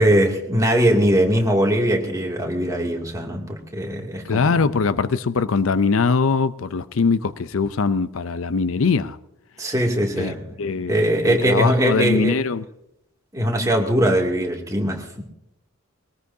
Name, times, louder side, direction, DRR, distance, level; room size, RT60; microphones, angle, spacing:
voice 1, 0.0-4.6 9.6-10.6 10.9-12.4 13.3-15.2, equal, 15° right, 2.5 m, -21 dB
voice 2, 4.2-9.2 10.2-12.6, left 4 dB, 75° left, 0.6 m, -22 dB
22.0 x 18.5 x 2.8 m
head